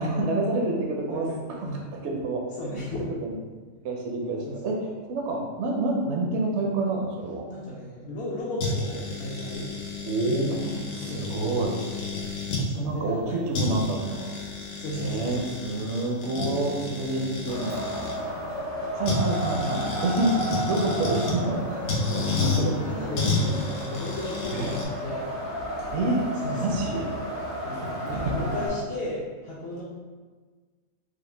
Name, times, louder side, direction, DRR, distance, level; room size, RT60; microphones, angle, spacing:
voice 1, 0.0-1.3 1.9-2.8 3.2-3.4 3.8-4.8 5.1-7.4 10.1-11.8 12.7-14.4 15.0-17.8 18.9-21.9 22.1-22.7 24.5-24.7 25.9-26.2 26.5-27.1 27.8-28.3, right 2 dB, 65° right, 0 dB, 0.8 m, -28 dB
voice 2, 1.1-1.4 1.6-1.8 2.6-3.1 4.4-4.6 7.5-9.8 10.3-10.5 10.8-11.6 12.5-13.5 14.7-15.7 16.4-18.0 22.4-25.3 26.4-26.7 27.6-29.8, left 1 dB, 60° left, -6 dB, 0.8 m, -35 dB
sound 1, 8.6-12.7 13.2-13.3 13.5-18.2 19.1-21.4 21.9-22.6 23.2-24.9, left 3 dB, 90° left, 1.2 m, -31 dB
Wind, 17.5-28.7, equal, 90° right, 2.0 m, -33 dB
4.8 x 2.1 x 3.2 m, 1.4 s
omnidirectional pair, 1.4 m